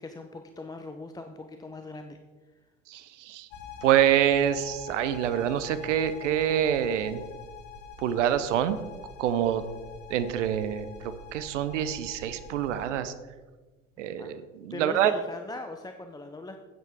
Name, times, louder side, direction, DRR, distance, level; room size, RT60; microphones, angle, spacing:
voice 1, 0.0-2.2 14.2-14.3 14.7-16.6, left 2 dB, 10° left, 6 dB, 0.6 m, -40 dB
voice 2, 2.9-3.5 3.8-7.2 8.0-8.8 9.2-9.6 10.1-13.1 14.0-15.1, right 10 dB, 70° right, 13 dB, 0.7 m, -26 dB
sound 1, 3.5-12.9, left 5 dB, 55° left, 1.6 m, -45 dB
10.5 x 9.0 x 3.6 m, 1.3 s
figure-of-eight pair, 65°, 38 cm